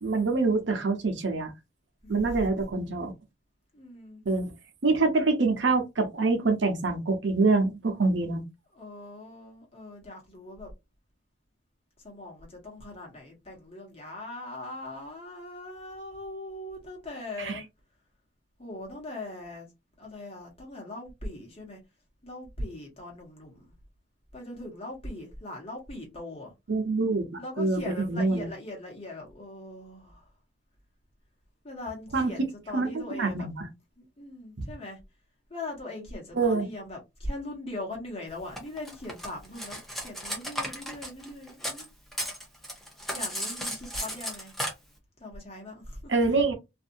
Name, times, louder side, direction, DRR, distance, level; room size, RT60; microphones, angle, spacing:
voice 1, 0.0-1.5 2.1-3.1 4.3-4.5 4.8-8.4 17.4-17.6 26.7-28.5 32.1-32.3 32.7-33.7 36.3-36.7 46.1-46.5, right 3 dB, 85° right, 0.8 m, -25 dB
voice 2, 2.0-2.6 3.7-4.2 8.7-10.7 12.0-17.7 18.6-19.7 20.0-21.8 22.2-23.7 24.3-26.5 27.4-30.3 31.6-33.5 34.0-35.0 35.5-41.9 43.1-44.5 45.2-46.1, left 2 dB, 35° left, 1.3 m, -40 dB
Cutlery silverware, 38.6-41.9 42.1-44.7, equal, ahead, 0.7 m, -34 dB
2.6 x 2.5 x 2.6 m
head